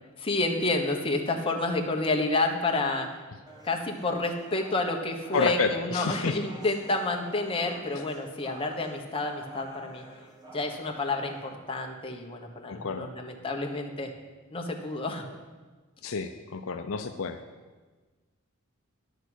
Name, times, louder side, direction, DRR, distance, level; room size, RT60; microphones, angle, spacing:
voice 1, 0.2-3.1 3.6-10.0 10.5-14.1 14.5-15.2, left 2 dB, 25° left, 2 dB, 1.3 m, -29 dB
sound 1, 3.5-11.5, right 1 dB, 20° right, 1.7 m, -48 dB
voice 2, 5.3-6.4 12.7-13.1 16.0-17.4, left 4 dB, 70° left, 7 dB, 0.6 m, -30 dB
11.0 x 6.7 x 8.2 m, 1.3 s
head